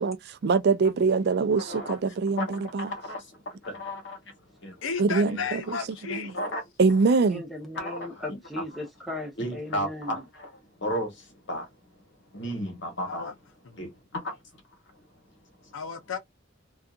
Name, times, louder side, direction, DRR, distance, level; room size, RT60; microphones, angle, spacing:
voice 1, 0.0-2.9 5.0-5.8 6.1-6.3 6.8-7.4, right 4 dB, 55° right, 0.4 m, -24 dB
voice 2, 1.6-2.0 2.4-4.2 4.6-4.8 5.3-5.4 6.2-6.6 7.8-8.2 9.4-10.5 10.8-11.7 12.3-13.3 13.8-14.4, equal, 65° left, 1.1 m, -34 dB
voice 3, 4.8-6.4 13.0-13.3 13.6-13.8 15.7-16.2, left 6 dB, 80° left, 0.6 m, -33 dB
voice 4, 7.3-10.2, left 1 dB, ahead, 0.8 m, -37 dB
2.7 x 2.3 x 2.3 m
head